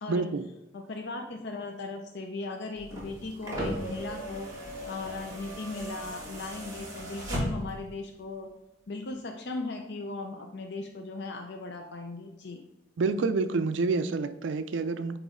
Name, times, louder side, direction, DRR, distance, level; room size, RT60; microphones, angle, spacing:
voice 1, 0.1-0.4 13.0-15.2, right 4 dB, 65° right, 10 dB, 0.4 m, -28 dB
voice 2, 0.7-4.5 4.9-8.5 8.9-12.6, left 3 dB, 60° left, 4 dB, 0.5 m, -38 dB
sound 1, 2.8-7.9 9.1-9.2, equal, 20° right, 1.7 m, -36 dB
9.0 x 3.0 x 3.7 m, 0.93 s
head